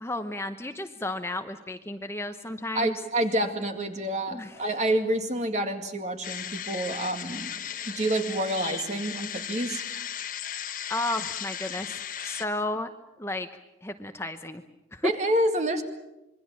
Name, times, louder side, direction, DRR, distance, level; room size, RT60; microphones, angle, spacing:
voice 1, 0.0-3.0 4.3-4.6 10.7-12.9 13.2-13.5 13.8-14.6 14.9-15.1, left 2 dB, 15° left, 7 dB, 0.9 m, -33 dB
voice 2, 2.7-7.5 7.9-9.8 15.0-15.8, right 1 dB, 40° right, 6 dB, 2.2 m, -28 dB
sound 1, 6.2-12.4, left 9 dB, 45° left, 1.2 m, -36 dB
26.0 x 23.0 x 7.4 m, 0.94 s
head